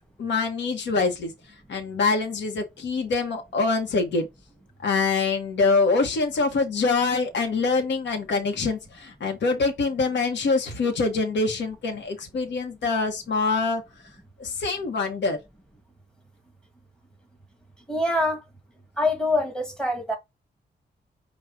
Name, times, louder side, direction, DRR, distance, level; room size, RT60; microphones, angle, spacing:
voice 1, 0.2-1.3 1.7-4.3 4.8-13.8 14.4-15.4, left 4 dB, 90° left, 1.0 m, -24 dB
voice 2, 17.9-18.4 19.0-20.2, left 1 dB, 5° left, 1.3 m, -24 dB
4.9 x 2.3 x 4.4 m
wide cardioid pair, 165°, 18 cm